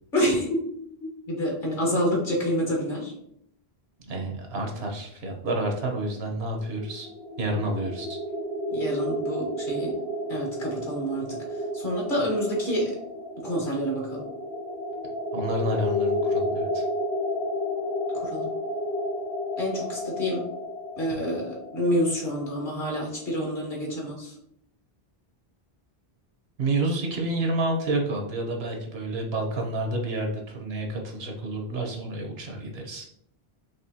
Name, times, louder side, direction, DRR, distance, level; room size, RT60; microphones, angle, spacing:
voice 1, 0.1-0.6 1.3-3.1 8.7-9.9 10.3-11.4 11.7-12.9 13.4-14.2 18.1-18.5 19.6-20.4 21.0-24.3, equal, 55° left, -2 dB, 1.7 m, -28 dB
voice 2, 4.1-7.1 7.4-8.2 15.3-16.8 26.6-33.1, right 2 dB, 75° right, 1 dB, 1.2 m, -29 dB
sound 1, 6.6-23.4, left 1 dB, 75° left, 1.3 m, -32 dB
5.4 x 3.2 x 2.8 m, 0.71 s
omnidirectional pair, 1.1 m